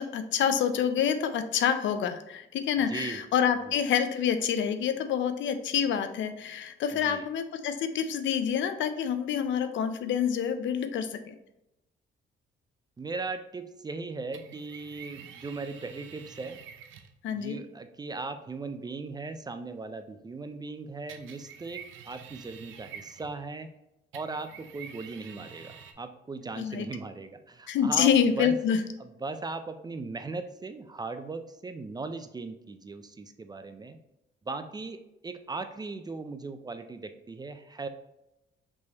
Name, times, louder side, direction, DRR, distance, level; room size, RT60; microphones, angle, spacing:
voice 1, 0.0-11.3 17.2-17.6 26.6-26.9 27.7-28.8, left 8 dB, 70° left, 9 dB, 0.5 m, -27 dB
voice 2, 2.9-3.3 3.7-3.8 6.9-7.3 13.0-16.6 17.4-23.7 24.1-28.6 29.0-34.0 34.4-37.9, right 3 dB, 20° right, 9 dB, 0.4 m, -38 dB
sound 1, 14.3-17.2 21.1-23.5 24.1-25.9, right 7 dB, 80° right, 0.5 m, -48 dB
5.3 x 3.2 x 2.8 m, 0.88 s
cardioid pair, 90°, 20 cm